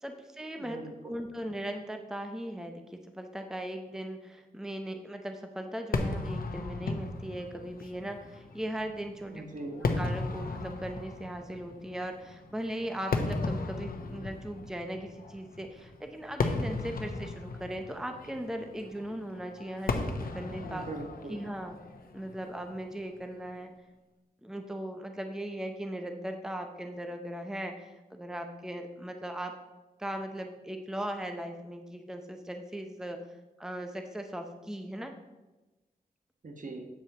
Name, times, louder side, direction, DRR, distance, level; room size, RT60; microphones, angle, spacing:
voice 1, 0.0-0.8 1.0-9.4 9.8-20.9 21.3-21.8 22.1-23.7 24.4-29.5 30.0-33.2 33.6-35.1, right 1 dB, 5° right, 5 dB, 0.7 m, -38 dB
voice 2, 0.6-1.2 9.3-9.9 20.6-21.4 36.4-36.9, right 2 dB, 55° right, 4 dB, 1.3 m, -41 dB
Fireworks, 5.9-23.3, left 3 dB, 70° left, 0.9 m, -36 dB
8.4 x 4.4 x 6.6 m, 1.1 s
wide cardioid pair, 90°, 16 cm